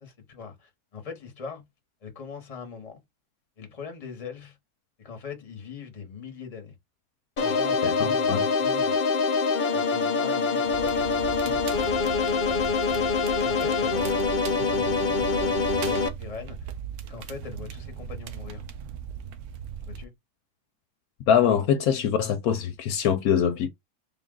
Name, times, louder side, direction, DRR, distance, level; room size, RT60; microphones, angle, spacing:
voice 1, 0.0-1.6 2.0-3.0 3.6-4.6 5.0-6.7 7.4-9.0 9.7-11.6 11.9-12.7 13.4-14.1 14.5-16.6 17.1-18.6 19.9-20.1 21.4-21.6, left 6 dB, 25° left, 1.0 m, -41 dB
sound 1, 7.4-16.1, left 4 dB, 55° left, 0.5 m, -25 dB
voice 2, 7.8-8.5 21.3-23.7, left 8 dB, 70° left, 1.0 m, -23 dB
Crackle, 10.7-20.1, right 8 dB, 75° right, 1.0 m, -38 dB
3.7 x 2.4 x 3.7 m
omnidirectional pair, 1.7 m